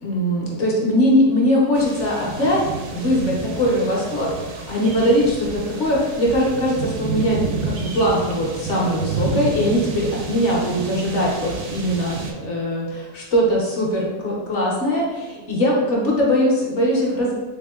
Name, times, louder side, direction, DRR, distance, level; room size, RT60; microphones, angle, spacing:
voice 1, 0.0-2.6 2.9-17.3, equal, 55° left, -3 dB, 0.9 m, -21 dB
sound 1, 1.7-12.3, right 4 dB, 70° right, 0.7 m, -30 dB
3.5 x 3.4 x 2.3 m, 1.2 s
omnidirectional pair, 1.6 m